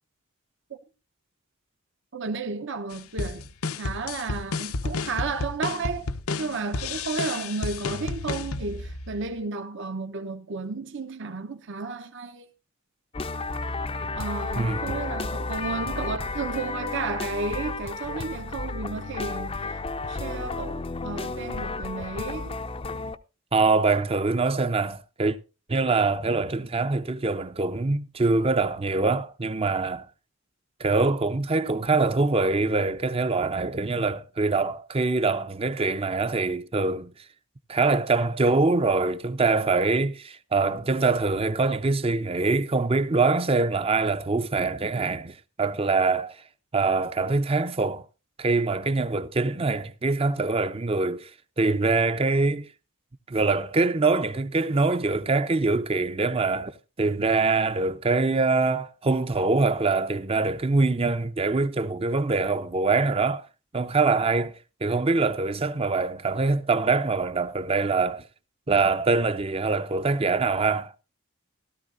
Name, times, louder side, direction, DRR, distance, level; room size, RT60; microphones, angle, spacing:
voice 1, 2.1-3.5 3.8-6.1 6.4-12.5 14.2-22.6, right 4 dB, 55° right, 0.8 m, -33 dB
sound 1, 2.9-9.4, left 3 dB, 85° left, 0.8 m, -32 dB
sound 2, 13.1-23.2, left 3 dB, 25° left, 0.5 m, -32 dB
voice 2, 14.6-15.0 23.5-25.4 25.7-30.1 30.8-37.1 37.7-46.4 46.7-48.0 48.4-51.3 51.6-52.7 53.3-63.4 63.7-64.5 64.8-68.2 68.7-70.9, right 3 dB, 25° right, 0.6 m, -24 dB
16.5 x 13.0 x 2.5 m
head